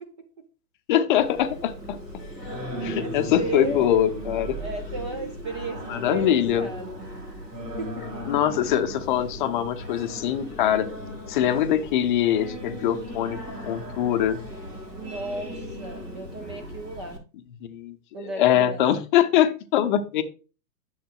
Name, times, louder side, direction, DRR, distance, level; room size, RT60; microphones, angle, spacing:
voice 1, 0.9-2.0 2.8-4.6 5.9-6.7 8.3-10.9 11.3-13.4 13.7-14.4 17.6-20.2, left 11 dB, 30° left, 9 dB, 0.7 m, -23 dB
Singing, 1.2-17.2, equal, 85° right, 3.7 m, -37 dB
voice 2, 2.8-3.9 4.6-7.0 7.8-8.2 14.9-17.2 18.1-18.9, right 3 dB, 20° right, 6 dB, 0.4 m, -35 dB
10.5 x 7.2 x 2.3 m, 0.34 s
figure-of-eight pair, 115°, 49 cm